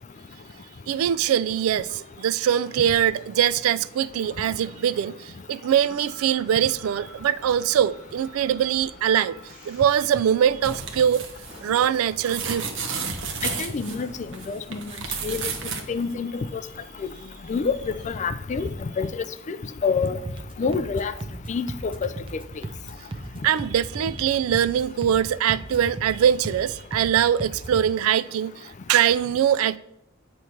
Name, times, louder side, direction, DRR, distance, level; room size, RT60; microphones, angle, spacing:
voice 1, 0.9-9.4 9.7-11.3 11.6-13.0 23.4-29.8, right 9 dB, 80° right, 0.3 m, -22 dB
sound 1, 5.8-18.1, equal, 5° right, 2.4 m, -48 dB
sound 2, 10.6-15.8 16.1-16.2, right 5 dB, 60° right, 0.9 m, -32 dB
voice 2, 13.4-14.1 14.5-14.9 15.2-15.4 15.9-16.6 17.0-17.1 17.5-18.7 19.0-19.6 19.8-20.2 20.6-21.1 21.5-22.4, left 5 dB, 35° left, 0.3 m, -27 dB
sound 3, 20.2-27.9, right 2 dB, 25° right, 0.6 m, -37 dB
8.4 x 3.1 x 5.8 m
head